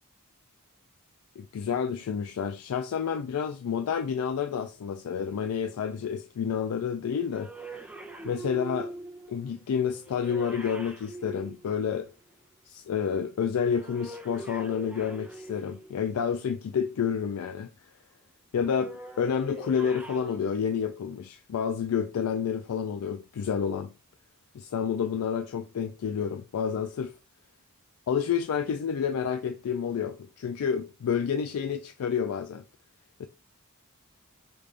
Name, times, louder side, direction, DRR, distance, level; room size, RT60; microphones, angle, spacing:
voice 1, 1.4-7.5 8.2-8.9 9.3-12.1 12.7-17.7 18.5-23.9 24.5-27.2 28.1-32.6 33.2-33.3, left 7 dB, 75° left, 0.4 m, -29 dB
sound 1, 7.3-12.3 13.6-16.1 18.6-20.4, right 2 dB, 5° right, 0.6 m, -43 dB
5.1 x 2.5 x 3.3 m
head